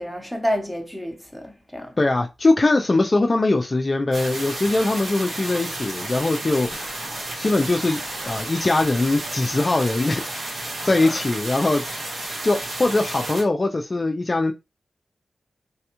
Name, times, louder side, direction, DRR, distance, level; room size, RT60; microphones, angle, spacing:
voice 1, 0.0-1.9 11.0-11.2, equal, ahead, 0.7 m, -29 dB
voice 2, 2.0-7.1 7.3-8.0 8.3-10.2 10.8-11.9 12.4-14.5, left 2 dB, 35° left, 0.3 m, -21 dB
sound 1, 4.1-13.4, right 2 dB, 85° right, 1.3 m, -32 dB
3.3 x 2.3 x 2.9 m
wide cardioid pair, 95°, 0 cm